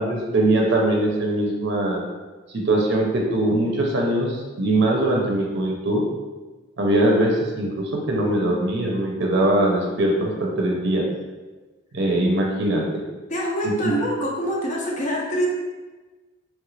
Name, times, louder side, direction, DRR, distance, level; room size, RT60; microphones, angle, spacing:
voice 1, 0.0-2.0 2.5-6.0 6.8-11.1 11.9-12.8 13.8-13.9, right 1 dB, 55° right, -1 dB, 0.5 m, -21 dB
voice 2, 13.3-15.5, equal, 35° left, -2 dB, 0.5 m, -25 dB
3.1 x 2.4 x 3.1 m, 1.2 s
head